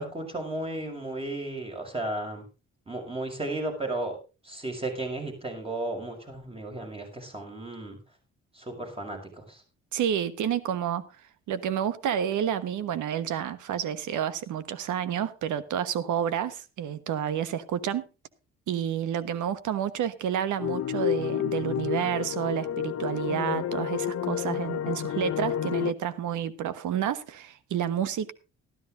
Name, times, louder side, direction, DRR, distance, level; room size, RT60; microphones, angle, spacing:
voice 1, 0.0-2.5 2.9-4.2 4.4-8.0 8.5-9.6, right 2 dB, 20° right, 2 dB, 6.0 m, -34 dB
voice 2, 9.9-11.0 11.5-18.0 18.7-28.3, right 9 dB, 75° right, 14 dB, 1.3 m, -29 dB
sound 1, 20.6-25.9, left 11 dB, 55° left, 0.8 m, -30 dB
13.5 x 12.5 x 3.8 m, 0.31 s
cardioid pair, 90°, 30 cm